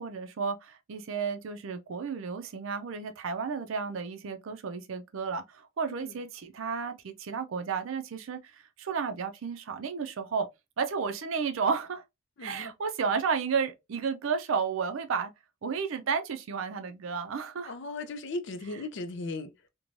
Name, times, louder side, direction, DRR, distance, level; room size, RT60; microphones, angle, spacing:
voice 1, 0.0-10.5 10.8-12.0 12.4-15.3 15.6-17.8, right 5 dB, 70° right, 0.4 m, -32 dB
voice 2, 12.4-12.7 17.6-19.5, left 2 dB, 60° left, 0.4 m, -37 dB
3.1 x 2.2 x 2.5 m
head